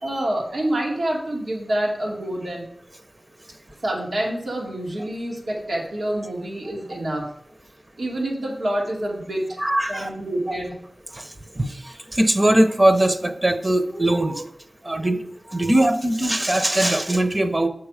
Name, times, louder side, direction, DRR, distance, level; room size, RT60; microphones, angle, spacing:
voice 1, 0.0-2.7 3.8-7.3 8.0-9.6 9.9-10.7, right 1 dB, 85° right, -2 dB, 2.3 m, -27 dB
voice 2, 9.6-10.1 10.5-10.6 11.1-14.5 14.8-15.2 15.5-17.7, right 1 dB, 30° right, 8 dB, 0.8 m, -21 dB
6.9 x 6.1 x 4.9 m, 0.68 s
wide cardioid pair, 70°, 0 cm